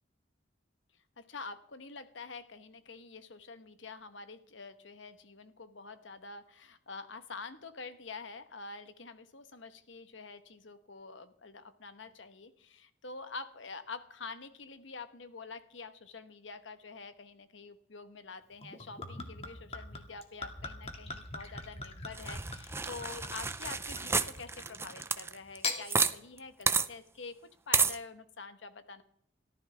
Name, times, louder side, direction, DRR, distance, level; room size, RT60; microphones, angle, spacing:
voice 1, 1.2-27.4 27.7-29.0, left 4 dB, 70° left, 10 dB, 1.2 m, -47 dB
Gurgling / Chink clink / Liquid, 18.6-24.8 25.4-25.8, left 3 dB, 30° left, 2.0 m, -41 dB
sound 1, 22.2-26.1 26.4-26.5 26.7-26.9 27.7-28.0, right 4 dB, 15° right, 0.6 m, -30 dB
20.0 x 14.5 x 3.5 m, 0.70 s
head